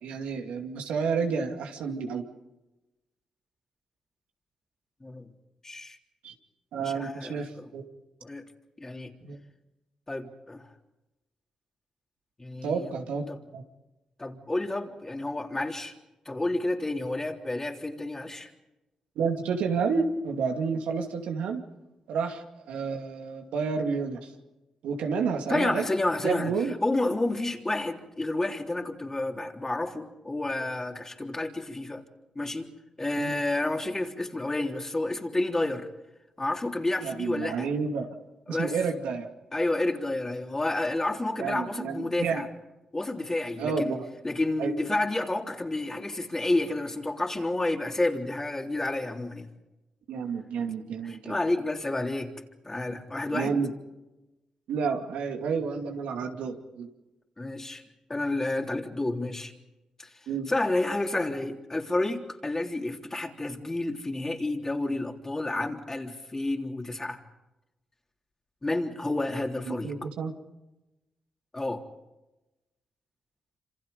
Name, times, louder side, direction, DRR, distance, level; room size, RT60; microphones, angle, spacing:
voice 1, 0.0-2.3 6.2-6.3 6.7-7.8 9.2-9.4 12.6-13.2 13.5-13.6 19.2-21.6 22.1-24.3 24.8-25.8 26.2-26.8 33.2-33.4 37.0-38.1 38.5-39.3 41.4-42.4 43.6-44.1 44.6-44.7 50.1-51.4 53.3-53.7 54.7-56.9 60.3-60.5 69.6-70.3, right 5 dB, 90° right, 3 dB, 2.5 m, -30 dB
voice 2, 5.6-6.0 6.8-7.7 8.2-8.4 8.8-9.1 10.1-10.7 12.4-12.9 13.3-13.4 14.2-15.9 16.2-18.5 25.5-26.5 26.8-32.0 32.3-32.7 33.0-35.9 36.4-37.7 38.5-38.8 39.5-42.5 42.9-44.0 44.2-49.5 51.0-52.3 52.6-53.5 57.4-57.8 58.1-59.5 60.0-60.1 60.5-67.2 68.6-69.9 71.5-71.8, left 2 dB, 20° left, 2 dB, 3.5 m, -30 dB
27.0 x 26.5 x 5.3 m, 1.0 s
cardioid pair, 65°, 2 cm